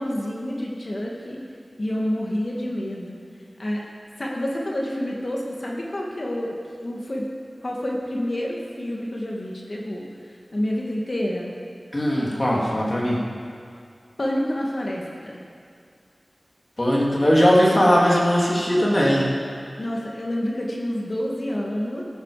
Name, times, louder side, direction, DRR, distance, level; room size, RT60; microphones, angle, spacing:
voice 1, 0.0-1.4 1.8-3.2 3.6-3.8 4.2-6.6 6.8-7.3 7.6-10.1 10.5-11.5 14.2-15.4 19.8-22.0, left 1 dB, 55° left, -2 dB, 2.2 m, -28 dB
voice 2, 11.9-13.2 16.8-19.3, equal, 35° left, -4 dB, 3.1 m, -19 dB
13.5 x 13.5 x 5.1 m, 2.2 s
wide cardioid pair, 55°, 0 cm